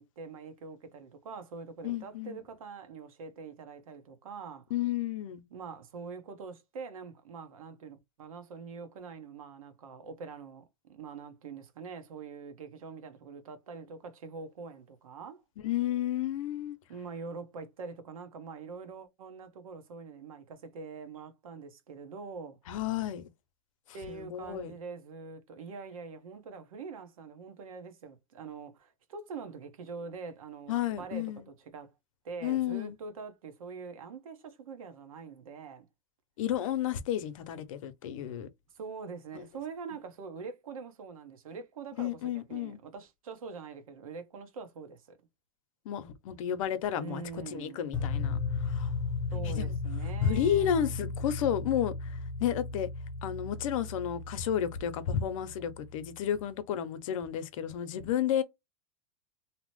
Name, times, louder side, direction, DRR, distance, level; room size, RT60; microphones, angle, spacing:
voice 1, 0.0-4.7 5.5-15.4 16.9-22.6 23.9-31.9 32.2-35.9 38.7-45.2 47.0-47.8 49.3-50.9, right 5 dB, 90° right, 0.9 m, -44 dB
voice 2, 1.8-2.4 4.7-5.4 15.6-16.8 22.7-23.3 24.1-24.7 30.7-31.4 32.4-33.0 36.4-38.5 39.3-39.4 42.0-42.8 45.8-48.9 49.4-49.7 50.2-52.9 53.2-58.4, left 10 dB, 75° left, 0.6 m, -32 dB
sound 1, 47.9-56.1, left 4 dB, 10° left, 0.9 m, -35 dB
2.8 x 2.0 x 3.0 m
supercardioid pair, 125°, 17 cm